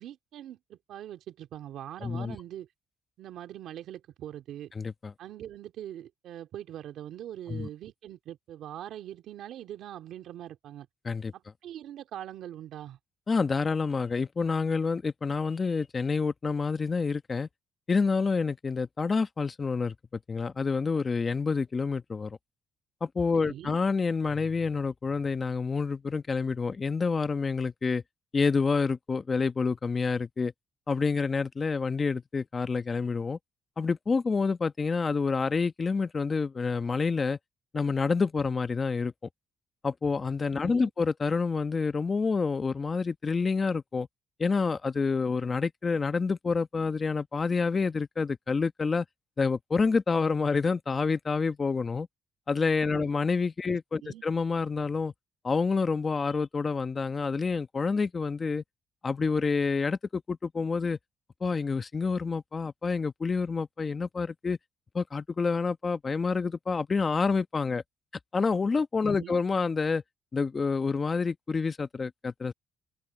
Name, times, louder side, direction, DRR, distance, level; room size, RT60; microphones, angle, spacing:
voice 1, 0.0-2.7 3.2-4.7 5.2-10.9 11.3-13.0 23.3-23.8 40.6-40.9 52.9-53.1 53.7-54.2 69.1-69.4, right 11 dB, 80° right, 2.5 m, -42 dB
voice 2, 2.0-2.4 4.7-5.1 7.5-7.7 11.0-11.3 13.3-17.5 17.9-19.9 20.3-22.4 23.0-28.0 28.3-30.5 30.9-33.4 33.8-37.4 37.7-39.1 39.8-44.1 44.4-49.1 49.4-52.1 52.5-55.1 55.4-58.6 59.0-61.0 61.4-64.6 64.9-67.8 68.3-70.0 70.3-72.5, left 4 dB, 35° left, 1.2 m, -28 dB
open air
cardioid pair, 90°, 0 cm